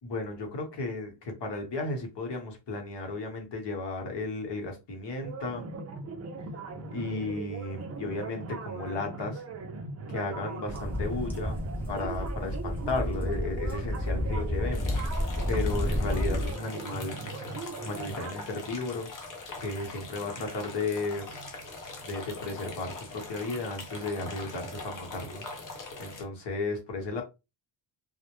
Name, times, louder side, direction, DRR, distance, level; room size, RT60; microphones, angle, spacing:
voice 1, 0.0-5.7 6.9-9.4 10.1-11.6 11.9-17.2 17.8-19.1 19.6-21.3 22.0-25.5 26.0-27.2, left 3 dB, 65° left, 0.9 m, -34 dB
sound 1, 5.2-18.3, right 4 dB, 40° right, 0.4 m, -39 dB
sound 2, 10.7-16.5, left 1 dB, 5° left, 0.6 m, -31 dB
sound 3, 14.7-26.2, left 2 dB, 45° left, 0.6 m, -42 dB
2.1 x 2.1 x 2.8 m
wide cardioid pair, 155°, 45 cm